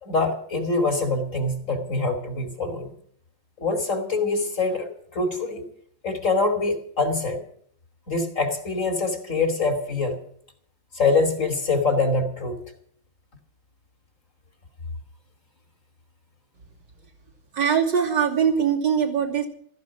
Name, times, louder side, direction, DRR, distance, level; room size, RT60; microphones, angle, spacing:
voice 1, 0.0-2.9 3.6-5.7 6.0-7.4 8.1-10.2 10.9-12.6, left 3 dB, 40° left, 6 dB, 3.1 m, -24 dB
voice 2, 17.5-19.5, right 7 dB, 70° right, -1 dB, 3.6 m, -22 dB
16.0 x 14.5 x 5.9 m, 0.62 s
omnidirectional pair, 2.0 m